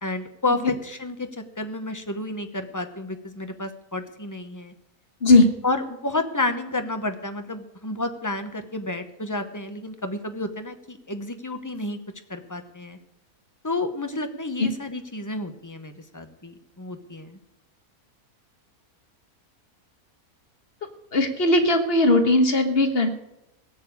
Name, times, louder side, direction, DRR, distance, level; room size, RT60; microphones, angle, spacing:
voice 1, 0.0-4.7 5.6-12.0 12.3-13.0 13.6-17.4, left 2 dB, 15° left, 7 dB, 0.8 m, -30 dB
voice 2, 21.1-23.1, left 2 dB, 40° left, 6 dB, 1.5 m, -18 dB
17.0 x 7.1 x 8.4 m, 0.88 s
omnidirectional pair, 1.6 m